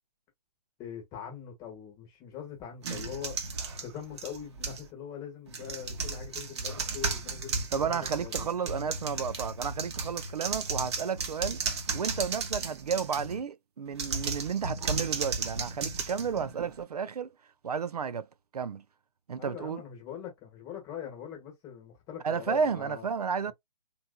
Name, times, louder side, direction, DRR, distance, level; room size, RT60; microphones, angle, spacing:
voice 1, 0.8-3.4 3.8-8.5 19.4-23.1, left 8 dB, 15° left, 1.0 m, -42 dB
sound 1, 2.8-4.9 5.5-13.4 13.9-16.8, right 4 dB, 40° right, 0.9 m, -34 dB
voice 2, 7.7-11.6 11.9-17.3 17.6-18.3 18.5-18.8 19.3-19.8 22.2-23.5, right 6 dB, 70° right, 0.4 m, -32 dB
3.0 x 2.5 x 2.3 m
figure-of-eight pair, 140°, 21 cm